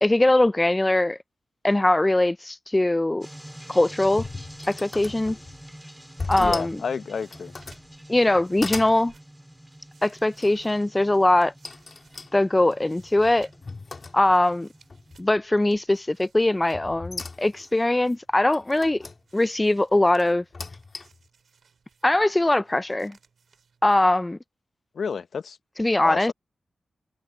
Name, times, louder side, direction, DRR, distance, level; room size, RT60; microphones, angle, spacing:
voice 1, 0.0-1.2 1.6-3.3 3.7-4.3 4.7-5.4 6.3-6.8 8.1-9.1 10.0-11.5 12.3-13.5 14.1-14.7 15.2-19.0 19.3-20.4 22.0-23.1 23.8-24.4 25.8-26.3, left 1 dB, 20° left, 0.4 m, -21 dB
sound 1, 3.2-15.3, right 1 dB, 10° right, 3.6 m, -47 dB
sound 2, 3.8-5.6 6.2-6.8 7.2-7.9 8.3-9.0 10.4-10.8 11.6-14.5 14.9-15.4 16.7-17.7 18.5-19.2 20.3-21.3, left 3 dB, 50° left, 2.6 m, -38 dB
voice 2, 6.4-7.5 24.9-25.6 26.0-26.3, left 6 dB, 70° left, 0.9 m, -30 dB
sound 3, 6.8-24.4, right 6 dB, 70° right, 7.1 m, -62 dB
supercardioid pair, 40°, 0 cm